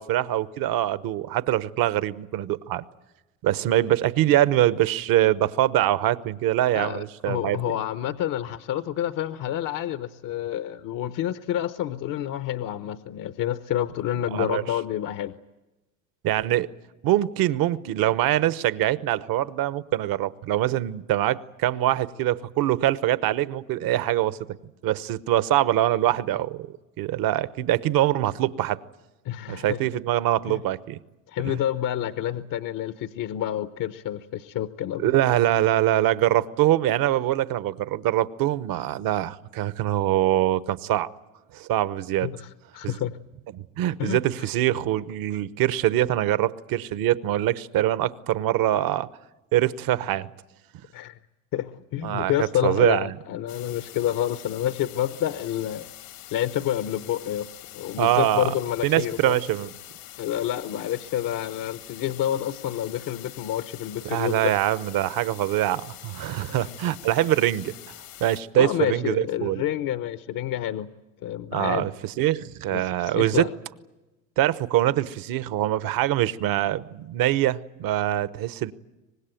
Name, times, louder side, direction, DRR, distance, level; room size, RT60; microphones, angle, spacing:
voice 1, 0.0-2.8 3.4-7.6 14.3-14.6 16.2-16.7 17.0-24.4 24.8-28.8 29.5-31.0 31.4-31.6 35.0-41.1 41.5-42.3 42.8-42.9 43.5-49.1 49.5-50.3 52.0-53.1 58.0-58.5 58.8-59.7 64.0-67.7 68.2-69.6 71.5-73.5 74.4-78.7, right 13 dB, 60° right, 15 dB, 1.1 m, -24 dB
voice 2, 6.7-15.3 29.2-29.8 30.5-30.6 31.3-35.1 42.2-43.2 44.0-44.2 50.9-51.2 51.5-55.8 56.3-59.4 60.2-64.5 68.5-70.9 71.2-71.9 72.7-73.5, left 11 dB, 55° left, 12 dB, 1.0 m, -28 dB
sound 1, 53.5-68.4, left 14 dB, 85° left, 2.7 m, -44 dB
24.5 x 20.0 x 9.1 m, 1.1 s
supercardioid pair, 85°, 40 cm